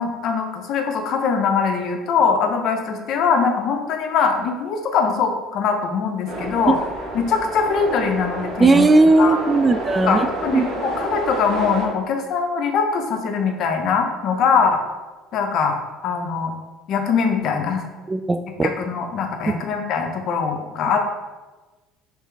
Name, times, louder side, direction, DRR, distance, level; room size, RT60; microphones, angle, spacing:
voice 1, 0.0-6.8 7.1-8.9 9.2-9.4 10.0-14.8 15.3-16.5 16.9-17.8 18.6-21.0, left 5 dB, 60° left, 4 dB, 0.7 m, -22 dB
sound 1, 6.3-11.9, right 1 dB, 65° right, 1.3 m, -29 dB
voice 2, 8.6-10.3 10.5-10.7 18.1-18.7, right 3 dB, 25° right, 9 dB, 0.3 m, -16 dB
4.4 x 3.4 x 3.4 m, 1.2 s
hypercardioid pair, 70°, 0 cm